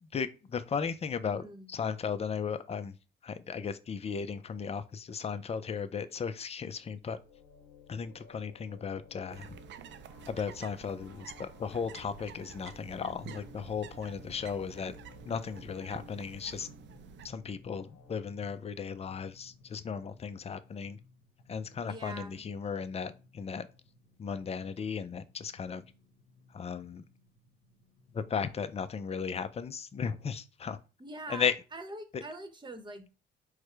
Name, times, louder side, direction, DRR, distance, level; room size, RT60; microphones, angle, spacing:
voice 1, 0.0-1.4 1.7-3.0 3.2-7.2 7.9-9.5 10.3-15.0 15.3-16.7 17.2-21.0 21.5-23.7 24.2-25.8 26.5-27.0 28.1-30.8 31.3-31.5 32.1-32.2, left 6 dB, 30° left, 0.5 m, -36 dB
voice 2, 1.2-1.7 21.8-22.5 31.0-33.1, right 2 dB, 25° right, 1.0 m, -44 dB
sound 1, 6.8-18.2, left 6 dB, 80° left, 0.9 m, -56 dB
sound 2, 9.3-17.3, right 9 dB, 65° right, 0.5 m, -50 dB
Drum, 13.3-29.4, left 3 dB, 55° left, 1.7 m, -61 dB
4.7 x 2.2 x 4.6 m
cardioid pair, 90°, 20 cm